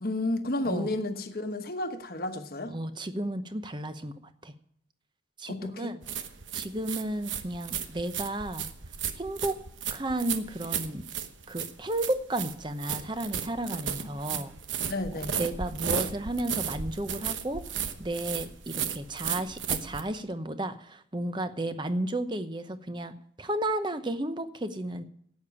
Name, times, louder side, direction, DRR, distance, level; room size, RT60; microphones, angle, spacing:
voice 1, 0.0-2.8 5.5-5.9 14.2-14.4 14.9-15.3, left 2 dB, 55° left, 1.1 m, -32 dB
voice 2, 2.7-4.5 5.4-6.0 6.5-8.7 9.2-9.6 9.9-11.0 11.5-14.5 15.1-17.6 18.0-25.0, right 1 dB, 25° right, 0.8 m, -33 dB
sound 1, 6.0-20.0, right 7 dB, 90° right, 1.0 m, -34 dB
12.0 x 8.6 x 7.0 m
head